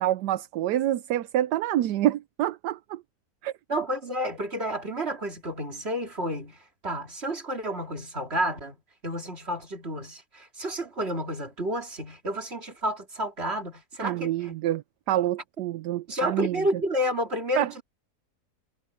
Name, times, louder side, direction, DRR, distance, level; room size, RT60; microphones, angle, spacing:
voice 1, 0.0-3.0 3.4-3.5 14.0-14.8 15.1-16.6 17.6-17.8, right 13 dB, 80° right, 1.2 m, -27 dB
voice 2, 3.7-6.6 6.8-8.8 9.0-14.5 16.1-17.8, equal, 40° right, 3.3 m, -30 dB
omnidirectional pair, 1.7 m